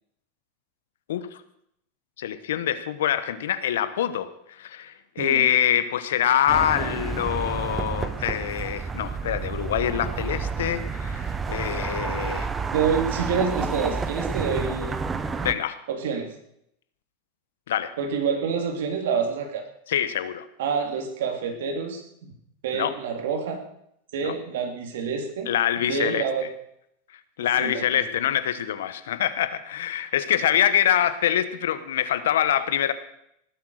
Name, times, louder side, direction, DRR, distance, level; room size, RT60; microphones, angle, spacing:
voice 1, 1.1-1.4 2.2-12.5 15.4-15.8 17.7-17.9 19.9-20.4 22.7-23.0 24.2-24.3 25.5-26.3 27.4-32.9, left 10 dB, 90° left, 13 dB, 1.2 m, -25 dB
sound 1, 6.5-15.5, right 5 dB, 15° right, 0.9 m, -30 dB
voice 2, 12.7-15.0 15.9-16.3 18.0-19.6 20.6-22.3 22.6-23.6 24.1-25.5 25.8-26.5 27.4-28.0, right 5 dB, 80° right, 5 dB, 3.2 m, -27 dB
19.0 x 8.2 x 6.6 m, 0.76 s
supercardioid pair, 145°, 0 cm